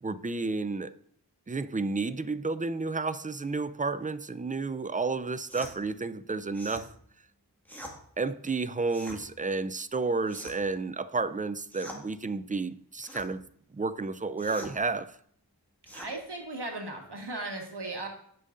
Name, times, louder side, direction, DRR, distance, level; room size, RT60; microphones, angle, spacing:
voice 1, 0.0-0.9 1.5-6.9 8.2-13.4 13.7-15.2, right 3 dB, 20° right, 0.4 m, -31 dB
sound 1, 5.5-5.7 6.5-6.9 7.6-8.0 8.9-9.2 10.3-10.7 11.7-12.0 13.0-13.3 14.4-14.7 15.9-16.1, equal, 5° left, 1.8 m, -44 dB
voice 2, 15.9-18.1, right 2 dB, 75° right, 1.5 m, -37 dB
16.0 x 5.5 x 2.5 m
wide cardioid pair, 45°, 41 cm